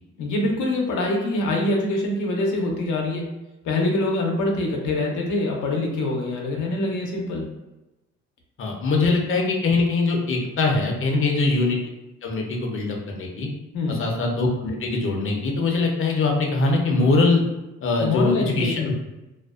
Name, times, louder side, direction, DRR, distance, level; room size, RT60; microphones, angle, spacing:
voice 1, 0.2-3.3 3.6-7.5 11.1-11.3 13.7-14.0 18.0-18.9, left 2 dB, 85° left, 0 dB, 0.7 m, -24 dB
voice 2, 8.6-11.8 12.2-13.5 13.9-17.4 17.8-18.9, left 3 dB, 45° left, 1 dB, 0.6 m, -22 dB
2.5 x 2.1 x 2.3 m, 1.0 s
cardioid pair, 90°, 30 cm